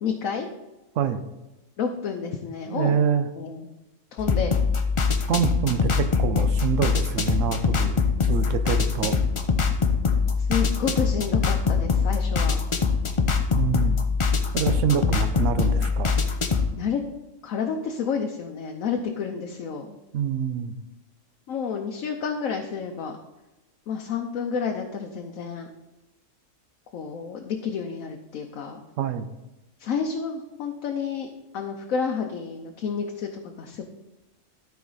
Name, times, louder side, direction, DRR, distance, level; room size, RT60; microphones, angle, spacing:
voice 1, 0.0-0.5 1.8-3.0 3.4-3.7 4.1-4.5 10.4-12.6 14.0-14.2 16.8-17.0 17.4-19.9 21.5-23.2 23.9-25.7 26.9-28.8 29.8-33.9, left 6 dB, 85° left, 3 dB, 1.1 m, -30 dB
voice 2, 2.7-3.3 5.3-8.0 8.3-9.2 13.5-14.0 14.5-16.2 20.1-20.7 29.0-29.3, right 8 dB, 75° right, 10 dB, 1.0 m, -26 dB
sound 1, 4.2-16.7, left 5 dB, 35° left, 0.5 m, -23 dB
12.5 x 4.7 x 4.0 m, 1.0 s
omnidirectional pair, 1.4 m